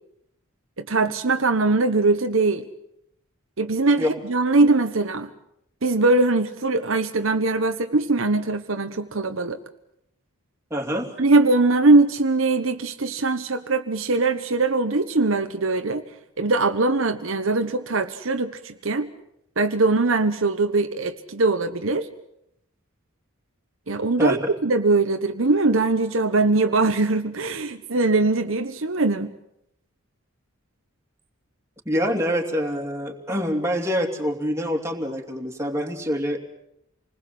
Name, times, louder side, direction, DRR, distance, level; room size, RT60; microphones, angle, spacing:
voice 1, 0.8-2.6 3.6-5.3 5.8-9.6 11.2-16.0 16.4-19.1 19.6-22.1 23.9-29.3, right 3 dB, 65° right, 7 dB, 1.1 m, -21 dB
voice 2, 10.7-11.1 24.2-24.5 31.8-36.4, equal, 15° right, 1 dB, 2.9 m, -25 dB
27.5 x 20.0 x 7.7 m, 0.77 s
head